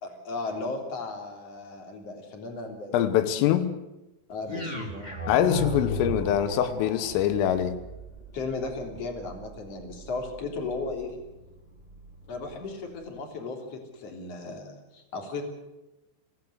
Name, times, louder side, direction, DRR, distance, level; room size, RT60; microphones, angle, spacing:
voice 1, 0.0-2.9 3.3-3.5 4.3-5.2 8.3-11.2 12.3-15.4, left 3 dB, 35° left, 3.9 m, -36 dB
voice 2, 2.9-3.7 5.3-7.8, left 10 dB, 85° left, 3.7 m, -24 dB
sound 1, 4.4-12.7, equal, 10° left, 2.5 m, -38 dB
25.0 x 16.5 x 8.1 m
omnidirectional pair, 5.7 m